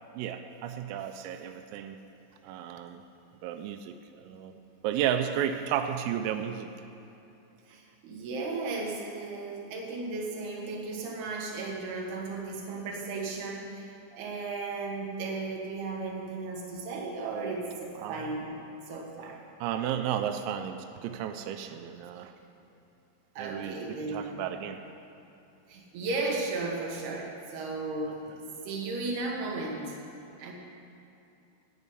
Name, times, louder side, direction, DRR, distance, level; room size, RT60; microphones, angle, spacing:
voice 1, 0.1-2.0 2.4-3.0 3.4-4.6 4.8-6.7 18.0-18.2 19.6-22.3 23.4-23.8 24.1-24.8, right 9 dB, 85° right, 7 dB, 3.3 m, -33 dB
voice 2, 7.7-19.4 23.4-24.4 25.7-30.0 30.4-30.5, right 3 dB, 60° right, -1 dB, 3.1 m, -35 dB
15.5 x 5.1 x 9.7 m, 2.8 s
omnidirectional pair, 6.0 m